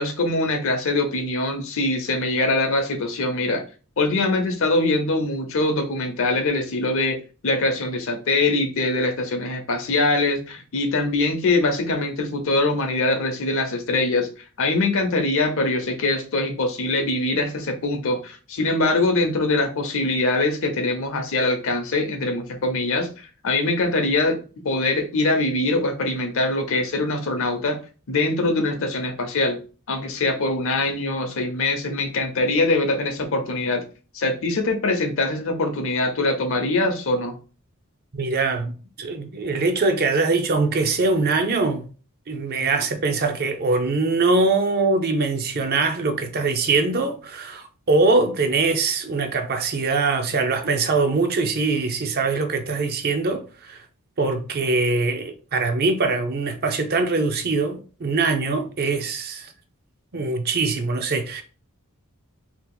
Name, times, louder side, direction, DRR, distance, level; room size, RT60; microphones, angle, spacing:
voice 1, 0.0-3.6 4.0-7.2 7.4-14.3 14.6-24.4 24.6-27.8 28.1-29.6 29.9-33.8 34.1-37.4, left 2 dB, 65° left, 0.7 m, -23 dB
voice 2, 38.1-41.9 42.3-53.8 54.2-59.5 60.1-61.4, right 3 dB, 45° right, 0.5 m, -22 dB
2.8 x 2.4 x 3.7 m
head